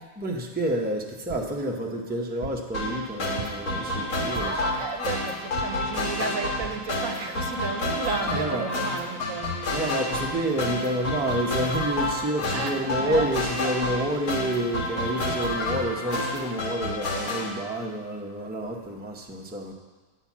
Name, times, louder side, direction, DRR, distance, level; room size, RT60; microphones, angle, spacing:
voice 1, 0.2-4.6 8.2-8.6 9.7-19.7, right 1 dB, 10° right, 0 dB, 0.7 m, -29 dB
sound 1, 1.3-1.6 2.4-2.7 3.4-3.8 4.4-4.7 5.6-5.9 6.6-6.9 7.5-7.6 7.8-7.9, right 4 dB, 55° right, 0.4 m, -39 dB
sound 2, 2.7-17.5, left 1 dB, 85° left, 1.9 m, -29 dB
voice 2, 4.4-9.5 12.5-13.3 13.6-13.8 15.6-16.0, right 5 dB, 70° right, 5 dB, 1.1 m, -33 dB
9.2 x 5.7 x 7.3 m, 1.4 s
omnidirectional pair, 1.5 m